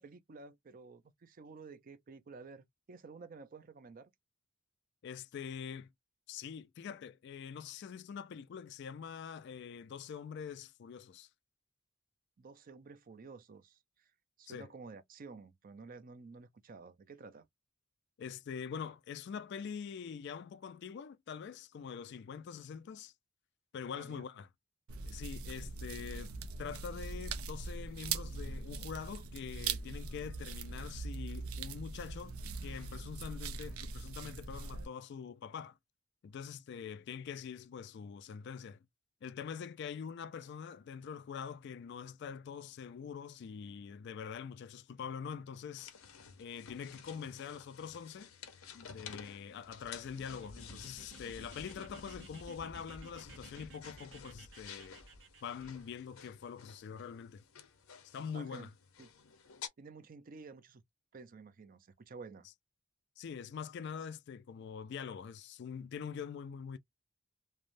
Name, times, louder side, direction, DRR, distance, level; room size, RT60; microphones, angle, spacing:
voice 1, 0.0-4.1 12.4-14.1 14.4-17.5 23.9-24.2 58.3-58.7 59.0-59.1 59.8-60.8 61.1-62.5, right 4 dB, 40° right, 0.4 m, -52 dB
voice 2, 5.0-5.9 6.3-11.3 14.5-14.7 18.2-23.1 23.7-24.5 25.1-32.4 32.6-35.8 36.2-38.8 39.2-45.9 46.4-48.3 48.7-55.0 55.4-57.4 58.0-58.7 63.2-66.8, left 7 dB, 55° left, 0.3 m, -44 dB
sound 1, 24.9-34.8, right 4 dB, 85° right, 0.5 m, -41 dB
sound 2, 45.8-59.7, left 7 dB, 80° left, 0.7 m, -53 dB
sound 3, 49.6-55.7, right 1 dB, 65° right, 1.1 m, -54 dB
3.2 x 2.1 x 2.5 m
head